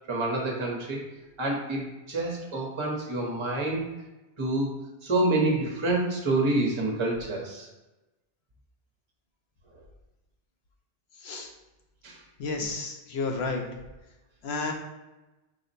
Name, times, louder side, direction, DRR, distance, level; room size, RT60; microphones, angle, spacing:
voice 1, 0.1-1.0 1.4-3.8 4.4-4.7 5.0-7.7 12.0-12.2, right 2 dB, 30° right, -2 dB, 0.8 m, -27 dB
voice 2, 11.2-11.5 12.4-13.6 14.4-14.7, left 3 dB, 75° left, 2 dB, 0.9 m, -31 dB
4.8 x 2.1 x 4.0 m, 1.0 s
omnidirectional pair, 1.1 m